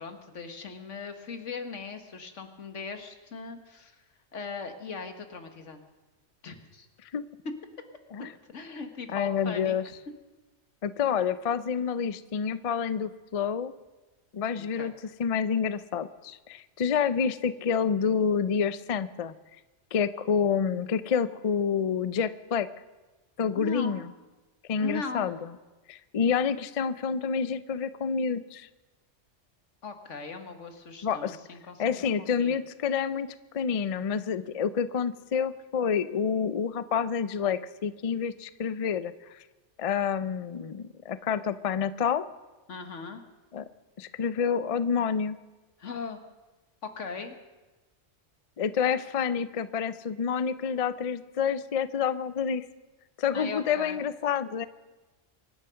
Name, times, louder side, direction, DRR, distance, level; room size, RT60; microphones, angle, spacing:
voice 1, 0.0-4.0 4.3-5.8 6.4-6.9 8.2-9.8 14.6-14.9 23.6-24.0 24.8-25.3 29.8-32.6 42.7-43.2 45.8-46.2 46.8-47.4 53.3-54.0, left 4 dB, 85° left, 7 dB, 1.8 m, -39 dB
voice 2, 9.1-9.8 10.8-13.7 14.3-14.9 15.2-19.3 19.9-22.7 23.4-24.0 24.7-25.4 25.9-28.7 31.0-31.4 31.8-33.3 33.5-39.4 39.8-42.3 43.5-43.7 44.0-45.4 48.6-52.6 53.2-54.7, left 7 dB, 45° left, 14 dB, 0.5 m, -28 dB
24.5 x 10.0 x 5.7 m, 1.2 s
omnidirectional pair, 1.2 m